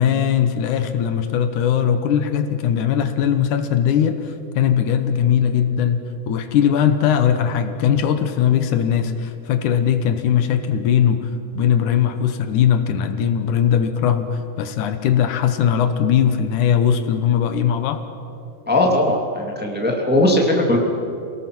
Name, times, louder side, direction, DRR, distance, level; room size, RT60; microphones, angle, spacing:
voice 1, 0.0-6.0 6.3-11.3 11.5-18.0, left 8 dB, 75° left, 9 dB, 2.5 m, -19 dB
voice 2, 18.7-20.8, left 1 dB, 5° right, 0 dB, 1.8 m, -18 dB
27.5 x 18.0 x 6.0 m, 2.6 s
omnidirectional pair, 3.6 m